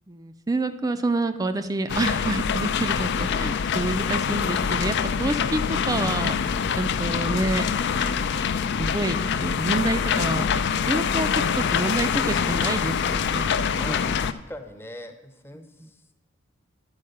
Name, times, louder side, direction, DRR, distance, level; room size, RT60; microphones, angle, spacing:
voice 1, 0.1-8.2 8.8-10.5 10.9-11.3 11.6-13.4 13.9-14.0 15.5-15.9, right 2 dB, 20° right, 9 dB, 0.4 m, -28 dB
sound 1, 1.9-14.3, left 6 dB, 55° left, 0.4 m, -25 dB
voice 2, 13.7-16.0, left 1 dB, 10° left, 6 dB, 0.7 m, -42 dB
11.0 x 4.6 x 6.5 m, 1.1 s
head